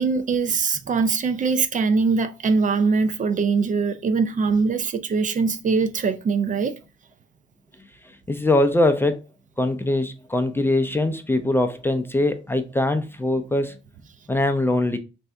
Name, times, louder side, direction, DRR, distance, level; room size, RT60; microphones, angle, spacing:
voice 1, 0.0-6.8, right 4 dB, 40° right, 0.5 m, -22 dB
voice 2, 8.3-9.2 9.6-13.8 14.3-15.0, left 1 dB, 10° left, 0.5 m, -22 dB
3.3 x 2.6 x 4.4 m
cardioid pair, 110°, 20 cm